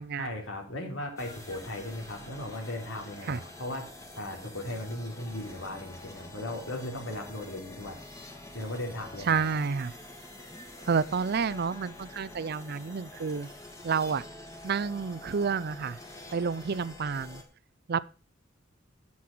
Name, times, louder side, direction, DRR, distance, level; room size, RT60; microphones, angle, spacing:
voice 1, 0.2-3.8 4.2-8.0 8.5-9.4, left 1 dB, 80° left, 3.5 m, -37 dB
sound 1, 1.2-17.4, left 2 dB, 15° left, 2.4 m, -47 dB
voice 2, 9.2-9.9 10.9-13.5 13.8-14.2 14.6-16.0 16.3-17.4 17.9-18.1, right 5 dB, 55° right, 0.5 m, -29 dB
8.7 x 8.6 x 6.0 m
head